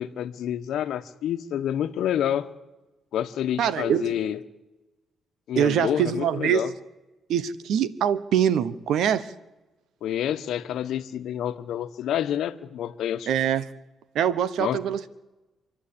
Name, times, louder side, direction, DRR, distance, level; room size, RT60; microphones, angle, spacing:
voice 1, 0.0-2.5 3.1-4.4 5.5-6.7 10.0-13.3 14.6-14.8, left 10 dB, 75° left, 10 dB, 1.1 m, -28 dB
voice 2, 3.6-4.1 5.6-6.6 7.3-9.3 13.3-13.6 14.1-15.1, right 9 dB, 75° right, 16 dB, 1.1 m, -24 dB
27.0 x 11.0 x 8.7 m, 1.1 s
cardioid pair, 90°, 0 cm